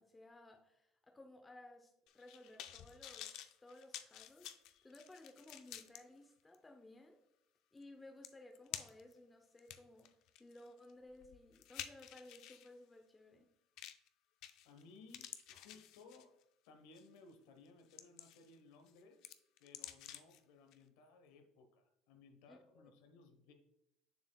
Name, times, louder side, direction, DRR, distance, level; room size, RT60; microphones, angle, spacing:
voice 1, 0.0-7.2 7.7-10.1 10.4-13.5 22.5-22.9, left 2 dB, 10° left, 4 dB, 0.6 m, -58 dB
sound 1, 2.1-6.0 6.5-6.6 7.8-7.9 8.2-9.1 9.6-12.7 13.8-14.1 14.4-14.8 15.1-16.4 17.0-17.2 17.7-18.5 18.9-20.4 20.7-20.8, left 11 dB, 60° left, 0.4 m, -51 dB
voice 2, 14.6-16.4 16.7-19.3 19.6-23.5, left 4 dB, 85° left, 6 dB, 1.0 m, -61 dB
6.9 x 6.7 x 2.2 m, 0.81 s
cardioid pair, 140°, 0 cm